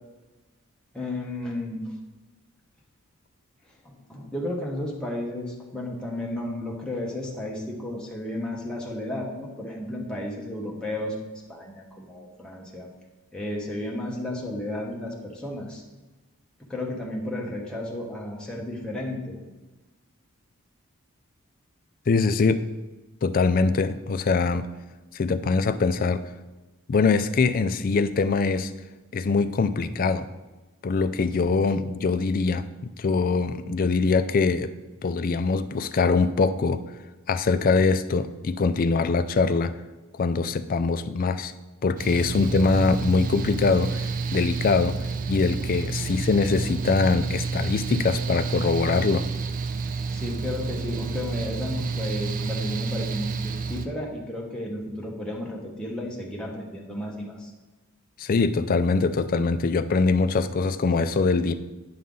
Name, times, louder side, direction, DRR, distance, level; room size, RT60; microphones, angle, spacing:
voice 1, 0.9-2.0 3.8-11.2 11.5-12.9 13.3-15.8 16.7-19.4 31.4-31.5 50.1-57.5, left 1 dB, 5° left, -3 dB, 1.0 m, -33 dB
voice 2, 22.1-22.6 23.2-24.7 25.1-26.2 26.9-28.7 29.1-30.3 30.8-34.7 35.0-36.8 37.3-39.7 40.1-41.5 41.8-45.0 45.3-49.2 58.2-61.5, left 4 dB, 40° left, 11 dB, 0.4 m, -23 dB
Mechanical fan, 42.0-53.9, right 4 dB, 40° right, 0.4 m, -30 dB
9.5 x 5.6 x 3.8 m, 1.2 s
head